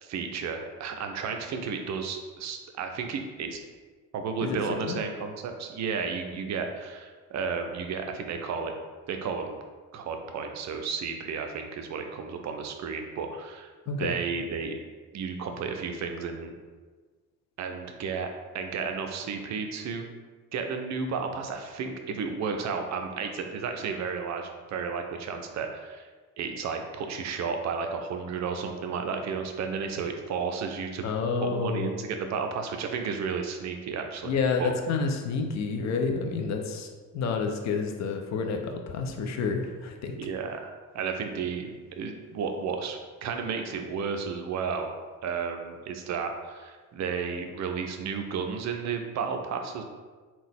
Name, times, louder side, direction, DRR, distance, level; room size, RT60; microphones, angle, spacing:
voice 1, 0.0-3.6 4.1-8.7 9.1-9.6 9.9-13.7 14.0-14.8 15.1-16.5 17.6-20.1 20.5-26.1 26.4-31.1 31.4-34.7 40.2-44.9 45.2-49.8, right 5 dB, 40° right, 5 dB, 0.5 m, -33 dB
voice 2, 4.4-5.0 13.9-14.1 31.0-31.9 34.2-36.9 37.1-40.2, left 4 dB, 40° left, 4 dB, 0.5 m, -29 dB
3.6 x 2.3 x 3.3 m, 1.4 s
figure-of-eight pair, 45°, 45 cm